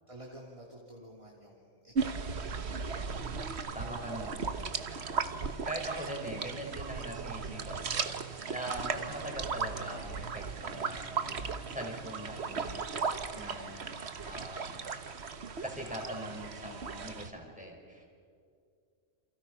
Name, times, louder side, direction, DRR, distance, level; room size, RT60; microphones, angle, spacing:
voice 1, 0.1-2.7 4.1-4.2, right 1 dB, 25° right, -2 dB, 2.8 m, -51 dB
sound 1, 2.0-17.3, right 5 dB, 60° right, 1.4 m, -37 dB
voice 2, 3.7-12.9 13.3-14.8 15.6-18.1, right 1 dB, 5° right, 0 dB, 5.3 m, -42 dB
29.0 x 28.5 x 5.6 m, 2.3 s
omnidirectional pair, 1.3 m